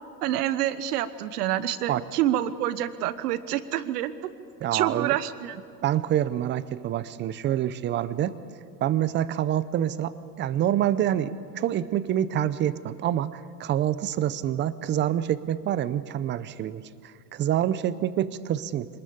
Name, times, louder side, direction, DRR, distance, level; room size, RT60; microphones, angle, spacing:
voice 1, 0.2-4.1 4.7-5.6, right 12 dB, 70° right, 13 dB, 1.3 m, -27 dB
voice 2, 4.6-5.2 5.8-8.3 8.8-16.8 17.3-18.9, right 11 dB, 25° right, 15 dB, 0.6 m, -26 dB
23.0 x 20.0 x 7.1 m, 2.4 s
hypercardioid pair, 120°, 49 cm